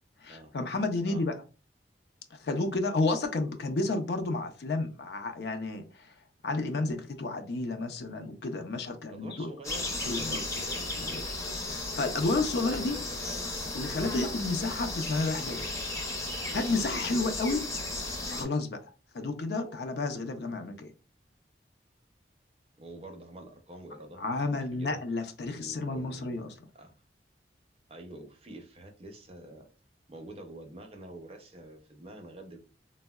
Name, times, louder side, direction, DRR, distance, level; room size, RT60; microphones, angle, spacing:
voice 1, 0.2-1.3 2.3-6.1 6.4-9.5 10.0-10.4 11.0-11.2 11.7-13.0 13.7-15.6 16.5-17.6 18.3-18.8 19.1-20.9 24.2-26.5, left 3 dB, 65° left, 0.4 m, -31 dB
voice 2, 9.1-11.0 12.5-13.5 22.8-24.2 24.6-25.0 25.6-26.4 26.7-27.0 27.9-29.7 30.1-32.6, right 1 dB, 35° right, 0.5 m, -46 dB
sound 1, 9.6-18.4, left 2 dB, 15° left, 0.5 m, -35 dB
3.5 x 2.0 x 2.2 m
head